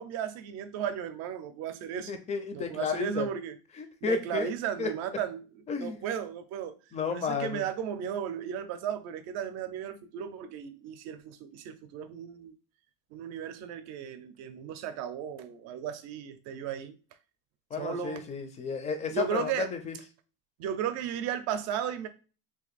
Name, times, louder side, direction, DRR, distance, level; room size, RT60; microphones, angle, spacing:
voice 1, 0.0-2.1 2.5-3.6 4.0-5.4 5.8-6.8 7.1-12.5 13.1-17.0 17.8-18.2 19.1-19.7 20.6-22.1, right 9 dB, 55° right, 0.6 m, -35 dB
voice 2, 2.1-3.3 3.8-4.5 4.8-4.9 5.7-6.1 6.9-7.6 17.7-20.0, left 5 dB, 20° left, 0.5 m, -32 dB
2.8 x 2.5 x 4.0 m
supercardioid pair, 140°, 33 cm